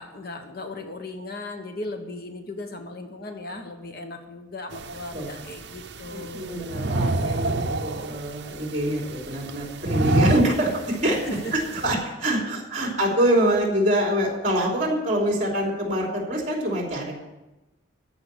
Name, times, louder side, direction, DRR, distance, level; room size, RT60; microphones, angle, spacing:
voice 1, 0.0-6.7 11.2-11.5, left 2 dB, 50° left, 5 dB, 1.2 m, -37 dB
sound 1, 4.7-11.9, right 2 dB, 65° right, 0.8 m, -29 dB
voice 2, 6.1-11.2 11.5-17.1, right 1 dB, 40° right, 0 dB, 3.1 m, -25 dB
14.0 x 5.7 x 8.3 m, 1.0 s
head